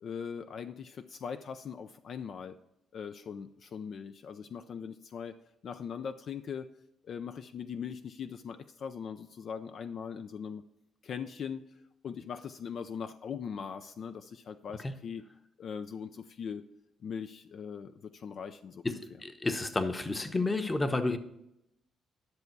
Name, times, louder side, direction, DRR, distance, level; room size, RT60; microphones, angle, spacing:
voice 1, 0.0-2.6 2.9-5.4 5.6-6.7 7.0-10.6 11.0-11.7 12.0-15.3 15.6-16.6 17.0-19.0, left 7 dB, 60° left, 9 dB, 0.4 m, -40 dB
voice 2, 18.8-21.2, left 2 dB, 20° left, 9 dB, 0.9 m, -31 dB
10.5 x 6.9 x 4.6 m, 0.81 s
cardioid pair, 90°, 0 cm